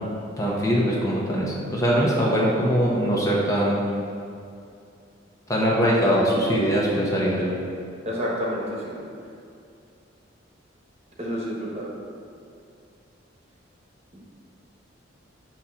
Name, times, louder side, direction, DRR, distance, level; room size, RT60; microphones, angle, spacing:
voice 1, 0.4-3.8 5.5-7.5, equal, 15° left, -4 dB, 0.7 m, -22 dB
voice 2, 8.0-9.0 11.2-11.9 14.1-14.2, equal, 35° right, -4 dB, 1.0 m, -29 dB
6.2 x 2.8 x 5.6 m, 2.5 s
head